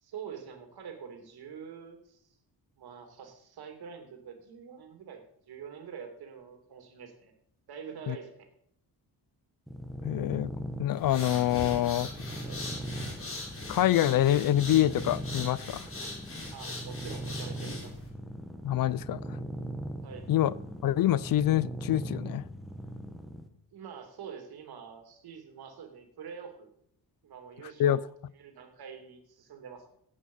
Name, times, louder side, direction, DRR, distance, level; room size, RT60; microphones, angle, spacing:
voice 1, 0.0-2.2 2.8-7.3 7.7-8.5 12.4-12.6 16.5-18.0 20.0-20.2 23.7-26.7 27.2-28.1 28.3-29.8, right 7 dB, 65° right, 4 dB, 2.8 m, -45 dB
sound 1, 9.7-23.5, right 1 dB, ahead, 1.2 m, -40 dB
voice 2, 10.0-10.5 10.8-12.1 13.7-15.9 18.6-19.2 20.3-20.5 20.8-22.4 27.8-28.0, left 12 dB, 55° left, 21 dB, 0.5 m, -26 dB
sound 2, 10.9-18.1, left 2 dB, 30° left, 4.5 m, -41 dB
16.5 x 8.7 x 5.5 m, 0.70 s
wide cardioid pair, 165°, 40 cm